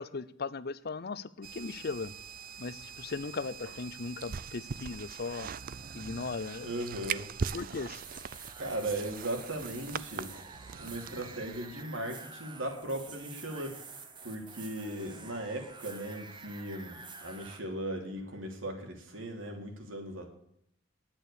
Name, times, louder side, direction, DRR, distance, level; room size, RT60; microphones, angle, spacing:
voice 1, 0.0-2.1 2.6-5.5 5.9-6.7 7.5-8.0, left 4 dB, 50° left, 17 dB, 0.6 m, -38 dB
sound 1, 1.4-11.8, right 6 dB, 45° right, 0.4 m, -41 dB
voice 2, 6.6-7.3 8.6-10.3 10.7-13.9 14.2-20.3, right 1 dB, 75° right, 3 dB, 2.9 m, -38 dB
sound 2, 7.7-17.6, right 4 dB, 25° right, 1.2 m, -48 dB
10.5 x 8.9 x 6.6 m, 0.73 s
head